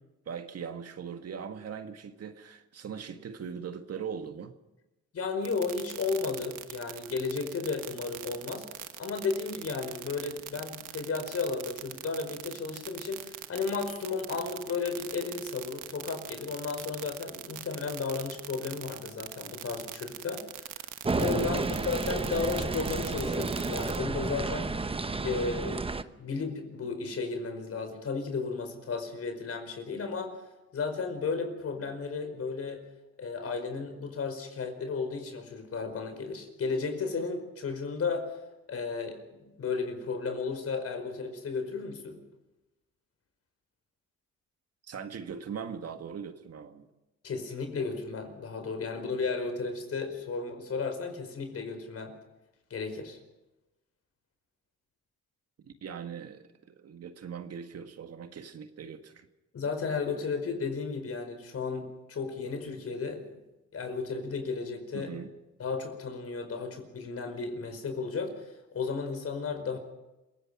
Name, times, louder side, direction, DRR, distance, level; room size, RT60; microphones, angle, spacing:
voice 1, 0.3-4.5 21.5-21.9 44.9-46.9 55.6-59.3 64.9-65.3, right 7 dB, 55° right, 7 dB, 1.7 m, -40 dB
voice 2, 5.1-8.7 9.0-20.7 21.1-24.7 25.1-30.4 30.7-32.8 33.2-38.3 38.7-42.2 47.2-52.2 52.7-53.2 59.5-63.2 63.7-65.1 65.6-69.8, left 4 dB, 50° left, 6 dB, 5.0 m, -34 dB
sound 1, 5.4-24.0, right 13 dB, 85° right, 1.3 m, -42 dB
sound 2, 21.0-26.0, right 3 dB, 20° right, 0.9 m, -31 dB
27.0 x 17.0 x 6.1 m, 1.0 s
cardioid pair, 90°, 30 cm